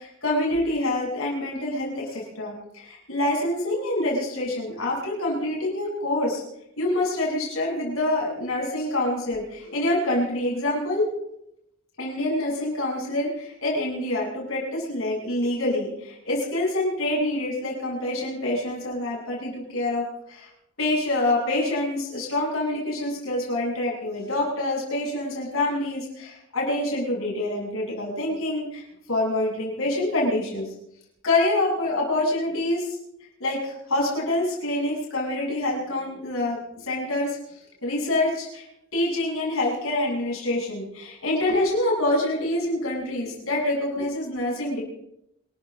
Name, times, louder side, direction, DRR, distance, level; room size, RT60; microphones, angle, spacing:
voice 1, 0.0-6.4 6.8-11.1 12.0-20.5 20.8-30.7 31.2-33.0 33.4-38.7 38.9-44.8, left 1 dB, 80° left, -3 dB, 7.7 m, -26 dB
27.5 x 13.5 x 3.7 m, 0.81 s
head